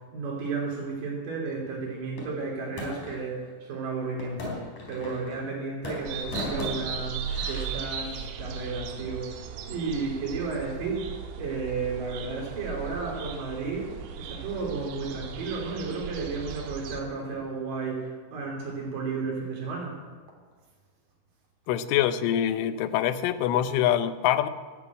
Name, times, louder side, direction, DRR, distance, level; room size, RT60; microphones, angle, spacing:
voice 1, 0.1-9.3 9.7-11.1 11.4-13.9 14.2-20.0, right 4 dB, 45° right, -1 dB, 4.3 m, -33 dB
sound 1, 2.2-3.2 4.2-5.5 5.8-7.6, left 2 dB, 40° left, 4.9 m, -37 dB
sound 2, 6.1-17.0, right 7 dB, 70° right, 3.1 m, -37 dB
voice 2, 21.7-24.5, left 11 dB, 80° left, 12 dB, 3.1 m, -25 dB
13.5 x 11.0 x 8.5 m, 1.5 s
omnidirectional pair, 5.8 m